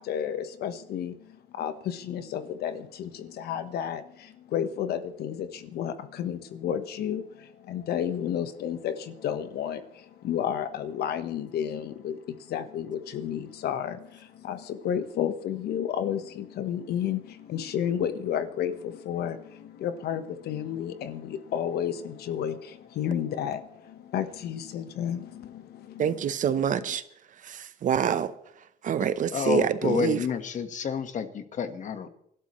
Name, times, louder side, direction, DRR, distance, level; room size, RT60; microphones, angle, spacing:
voice 1, 0.0-26.3, left 9 dB, 70° left, 1.2 m, -32 dB
voice 2, 26.0-27.0 27.4-28.3 28.8-30.2, right 8 dB, 50° right, 0.9 m, -26 dB
voice 3, 29.3-32.1, left 7 dB, 45° left, 1.5 m, -29 dB
28.0 x 12.5 x 3.2 m
cardioid pair, 110°, 17 cm